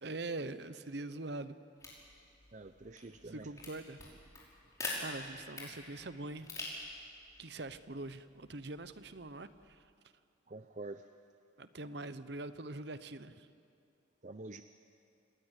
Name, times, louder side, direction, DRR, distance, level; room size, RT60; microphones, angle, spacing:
voice 1, 0.0-1.6 3.2-4.0 5.0-6.5 7.4-9.9 11.6-13.5, right 2 dB, 60° right, 13 dB, 0.9 m, -43 dB
sound 1, 1.8-9.7, left 2 dB, 15° left, 5.4 m, -47 dB
voice 2, 2.5-3.5 10.5-11.1 14.2-14.6, right 2 dB, 40° right, 9 dB, 0.6 m, -47 dB
28.0 x 19.5 x 8.2 m, 2.5 s
head